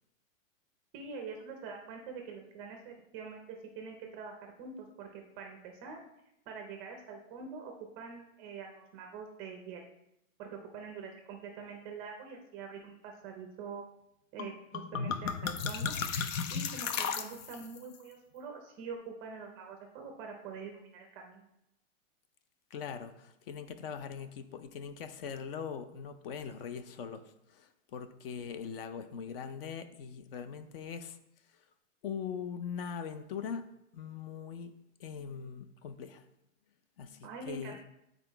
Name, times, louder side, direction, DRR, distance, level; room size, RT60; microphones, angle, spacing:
voice 1, 0.9-6.0 6.5-9.8 10.4-13.8 14.3-15.9 16.5-21.5 37.2-37.8, right 5 dB, 20° right, 3 dB, 0.5 m, -45 dB
sound 1, 14.4-14.5 14.7-17.8, left 6 dB, 75° left, 0.9 m, -34 dB
voice 2, 22.7-31.2 32.0-33.7 33.9-34.7 35.0-36.2 37.0-37.8, left 7 dB, 45° left, 11 dB, 0.6 m, -41 dB
9.1 x 4.0 x 4.5 m, 0.84 s
supercardioid pair, 160°, 40 cm